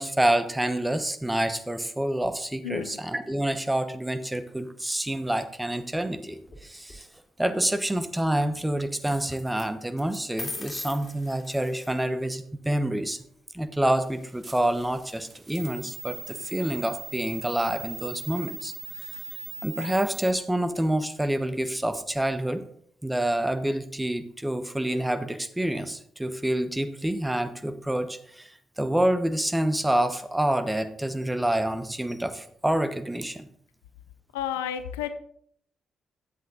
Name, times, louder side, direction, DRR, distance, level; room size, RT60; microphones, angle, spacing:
voice 1, 0.0-7.1 7.4-13.2 13.5-19.1 19.6-22.6 23.0-33.5, right 1 dB, 10° right, 9 dB, 1.0 m, -27 dB
voice 2, 2.6-3.0 34.3-35.1, left 10 dB, 85° left, 10 dB, 0.5 m, -31 dB
sound 1, 6.4-7.0 9.3-9.7 10.0-12.0, left 3 dB, 40° left, 2.6 m, -39 dB
sound 2, 14.0-20.3, right 4 dB, 30° right, 0.7 m, -41 dB
9.4 x 7.9 x 3.8 m, 0.66 s
hypercardioid pair, 40°, 0 cm